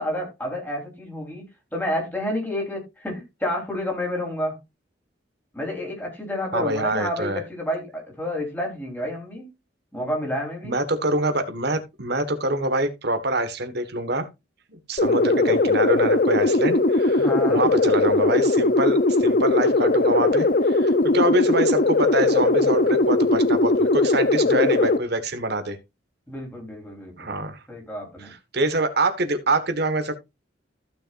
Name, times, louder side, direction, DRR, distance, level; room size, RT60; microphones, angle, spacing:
voice 1, 0.0-4.6 5.5-9.5 9.9-10.7 17.2-17.7 24.4-24.9 26.3-27.4 27.7-28.3, left 1 dB, 10° left, 4.0 m, -30 dB
voice 2, 6.5-7.4 10.6-14.3 14.7-25.8 27.2-27.6 28.2-30.1, right 2 dB, 60° right, 1.6 m, -25 dB
sound 1, 15.0-25.0, left 2 dB, 50° left, 0.7 m, -19 dB
15.0 x 6.3 x 2.6 m
head